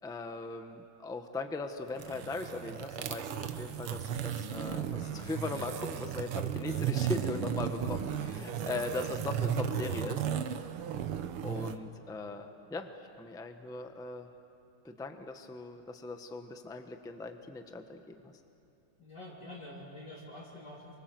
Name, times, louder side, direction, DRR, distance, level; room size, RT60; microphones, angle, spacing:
voice 1, 0.0-4.8 5.1-10.2 11.4-14.3 14.8-18.3, left 3 dB, 5° left, 6 dB, 0.7 m, -39 dB
sound 1, 1.9-11.8, right 9 dB, 85° right, 1.9 m, -35 dB
voice 2, 4.3-5.0 7.7-7.8 8.2-8.8 19.0-20.9, left 1 dB, 55° left, -6 dB, 3.6 m, -48 dB
29.0 x 24.5 x 7.7 m, 2.7 s
omnidirectional pair, 2.3 m